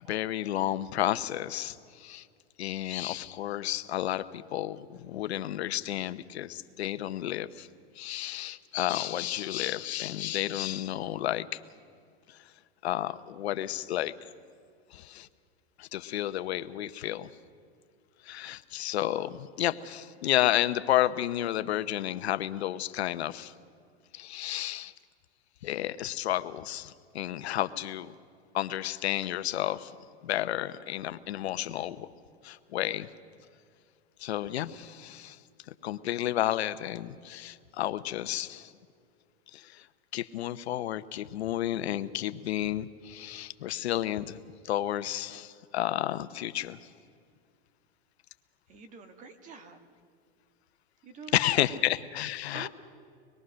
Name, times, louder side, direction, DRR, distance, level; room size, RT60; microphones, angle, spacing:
voice 1, 0.0-2.3 2.6-7.7 8.0-11.6 12.3-12.4 12.8-14.1 14.9-15.3 15.8-17.3 18.2-23.5 24.1-24.9 25.6-28.1 28.5-29.9 30.2-32.1 32.4-33.1 34.2-35.4 35.7-38.7 39.5-39.9 40.1-46.8 51.3-52.7, left 13 dB, 75° left, 13 dB, 0.9 m, -31 dB
voice 2, 48.7-49.8 51.0-51.8 52.5-52.7, right 5 dB, 25° right, 9 dB, 1.5 m, -47 dB
25.5 x 21.5 x 6.3 m, 2.3 s
supercardioid pair, 155°, 32 cm